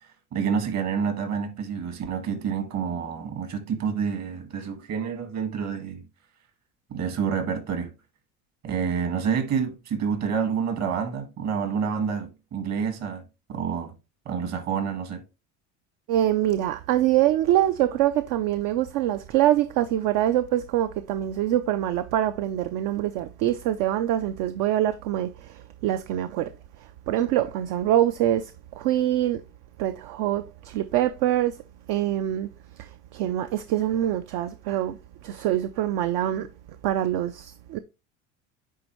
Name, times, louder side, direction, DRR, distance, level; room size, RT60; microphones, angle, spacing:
voice 1, 0.3-6.0 6.9-7.9 8.6-13.2 13.5-13.9 14.3-15.2, right 6 dB, 50° right, 1.8 m, -28 dB
voice 2, 16.1-26.5 27.1-29.4 29.8-31.5 31.9-32.5 32.8-35.0 35.2-36.5 36.8-37.8, right 12 dB, 65° right, 0.6 m, -24 dB
9.5 x 3.5 x 3.1 m
supercardioid pair, 115°, 35 cm